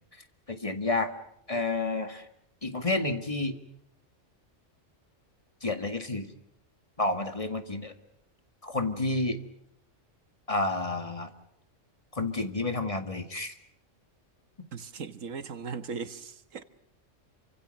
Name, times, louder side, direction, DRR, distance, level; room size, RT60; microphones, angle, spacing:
voice 1, 0.5-1.1 1.5-2.3 2.6-3.6 5.6-6.3 7.0-7.9 8.6-9.4 10.5-11.3 12.1-13.5, left 2 dB, 25° left, 7 dB, 2.0 m, -30 dB
voice 2, 14.7-16.6, right 5 dB, 85° right, 11 dB, 1.7 m, -38 dB
28.0 x 25.5 x 6.6 m, 0.74 s
omnidirectional pair, 1.3 m